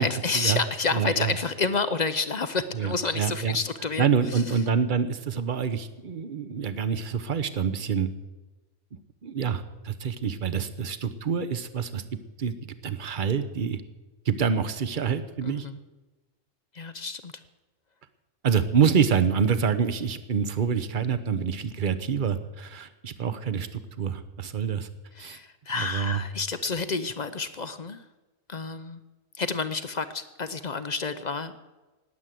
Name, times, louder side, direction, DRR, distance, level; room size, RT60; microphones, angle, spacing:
voice 1, 0.0-4.6 15.4-15.8 16.7-17.3 25.1-28.0 28.5-29.0 29.3-31.6, left 4 dB, 45° left, 12 dB, 0.6 m, -29 dB
voice 2, 0.9-1.3 2.7-3.6 4.0-8.1 9.2-13.8 14.3-15.7 18.4-24.9 25.2-25.4 25.8-26.2, right 7 dB, 45° right, 13 dB, 0.9 m, -26 dB
19.5 x 8.1 x 7.6 m, 1.2 s
omnidirectional pair, 1.4 m